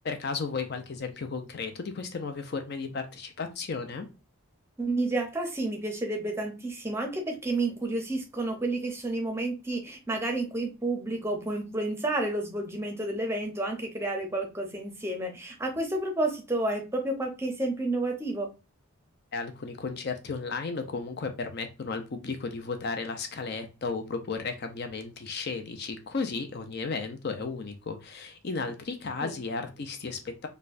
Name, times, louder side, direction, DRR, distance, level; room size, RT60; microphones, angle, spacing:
voice 1, 0.0-4.1 19.3-30.5, left 4 dB, 50° left, 6 dB, 0.5 m, -34 dB
voice 2, 4.8-18.5 29.2-29.4, right 2 dB, 10° right, 3 dB, 0.6 m, -30 dB
4.3 x 2.2 x 2.5 m, 0.30 s
head